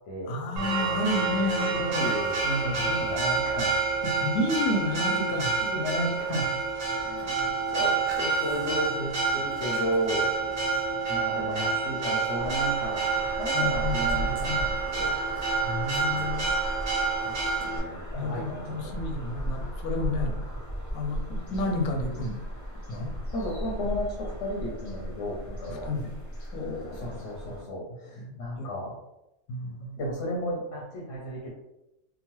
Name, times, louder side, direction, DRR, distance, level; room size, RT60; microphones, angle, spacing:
voice 1, 0.3-2.0 2.5-2.7 4.2-5.5 13.5-14.6 15.6-16.4 18.1-20.4 20.9-22.4 22.9-23.2 25.7-26.1 26.5-27.2 27.4-27.5 28.2-28.7 29.5-30.0, left 2 dB, 85° left, 2 dB, 1.1 m, -31 dB
Church bell, 0.6-17.8, right 4 dB, 80° right, 0.3 m, -28 dB
voice 2, 1.8-3.8 4.0-4.3 5.6-6.5 6.9-10.3 11.1-15.1 16.1-16.5 17.2-18.9 23.3-25.9 26.9-29.0 30.0-31.5, equal, 60° left, -2 dB, 0.8 m, -34 dB
sound 1, 12.4-27.6, equal, 25° left, 0.4 m, -36 dB
3.0 x 2.0 x 2.9 m, 0.92 s
omnidirectional pair, 1.5 m